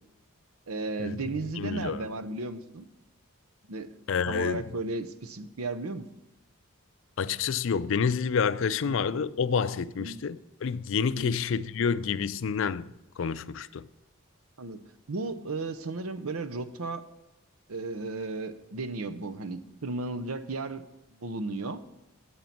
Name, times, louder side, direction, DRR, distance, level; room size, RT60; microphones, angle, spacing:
voice 1, 0.7-2.8 3.7-3.9 4.3-6.1 8.8-8.9 10.0-10.2 11.1-11.3 14.6-14.8 15.1-17.0 17.7-20.8 21.2-21.8, right 3 dB, 90° right, 0.8 m, -34 dB
voice 2, 1.5-2.1 4.1-4.7 7.2-13.9, left 6 dB, 60° left, 0.4 m, -28 dB
9.2 x 8.6 x 5.9 m
head